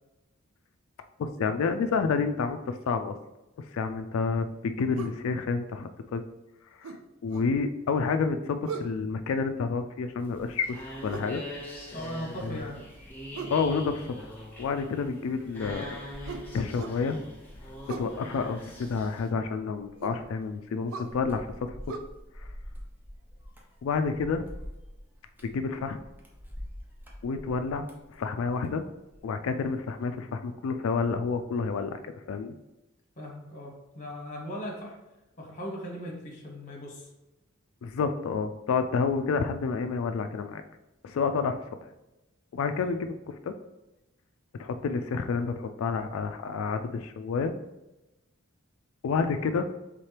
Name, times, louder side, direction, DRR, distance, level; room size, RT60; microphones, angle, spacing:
voice 1, 1.2-3.2 3.6-6.2 6.8-7.0 7.2-10.8 11.0-11.4 12.4-12.6 13.5-14.3 14.6-16.0 16.5-17.2 17.9-21.5 21.9-22.0 22.4-22.5 23.8-24.4 25.4-26.0 27.2-28.8 29.2-32.6 37.8-40.6 41.0-41.6 42.5-43.5 44.6-47.5 49.0-49.7, left 5 dB, 75° left, 8 dB, 0.3 m, -29 dB
sound 1, 5.0-5.2 6.8-7.5 8.6-9.0 11.1-11.4 13.3-13.6 16.3-17.0 17.8-18.1 20.0-20.2 20.9-21.1 21.9-22.0, right 5 dB, 90° right, 0.5 m, -38 dB
sound 2, 10.2-19.3, left 1 dB, 10° left, 1.2 m, -43 dB
voice 2, 11.9-12.8 33.2-34.9 35.4-37.1 42.5-42.7, equal, 40° left, 0 dB, 1.2 m, -38 dB
sound 3, 12.6-29.3 29.6-30.1, equal, 10° right, 0.8 m, -48 dB
4.3 x 3.7 x 3.2 m, 0.97 s
head